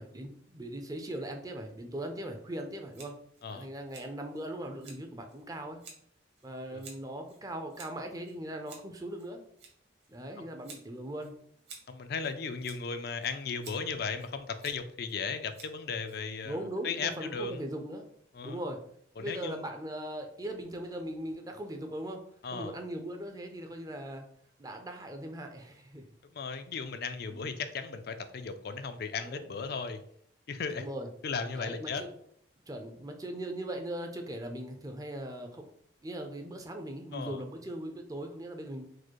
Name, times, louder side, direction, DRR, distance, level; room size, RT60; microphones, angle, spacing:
voice 1, 0.0-3.2 3.5-5.8 6.4-9.4 10.1-11.3 16.4-18.1 18.4-18.8 19.2-22.2 22.5-24.2 24.6-26.0 27.3-27.5 29.2-29.5 30.7-31.1 31.5-32.1 32.7-35.7 36.0-38.8, right 1 dB, 20° right, 4 dB, 0.5 m, -39 dB
Scissors, 2.9-16.6, right 4 dB, 60° right, 1.2 m, -55 dB
voice 2, 11.9-16.6 16.8-17.6 18.3-18.6 19.2-19.6 22.4-22.7 26.3-30.0 30.5-30.8 31.2-32.0 37.1-37.4, left 5 dB, 50° left, 8 dB, 0.4 m, -36 dB
4.7 x 2.1 x 4.5 m, 0.65 s
head